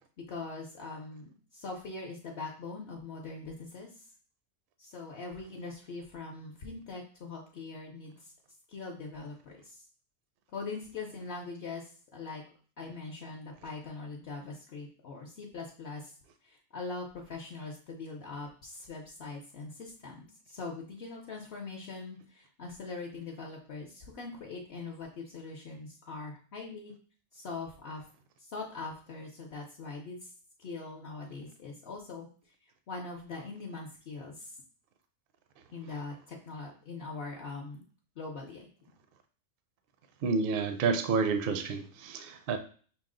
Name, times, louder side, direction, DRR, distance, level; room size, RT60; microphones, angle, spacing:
voice 1, 0.3-3.9 4.8-8.3 8.7-9.8 10.5-12.4 12.8-16.1 16.4-26.9 27.3-28.0 28.4-30.3 30.6-32.3 32.6-34.5 35.7-37.8 38.2-38.7, left 3 dB, 60° left, -1 dB, 0.9 m, -42 dB
voice 2, 40.2-42.6, right 5 dB, 60° right, 8 dB, 0.6 m, -29 dB
5.8 x 2.0 x 3.7 m, 0.42 s
omnidirectional pair, 1.3 m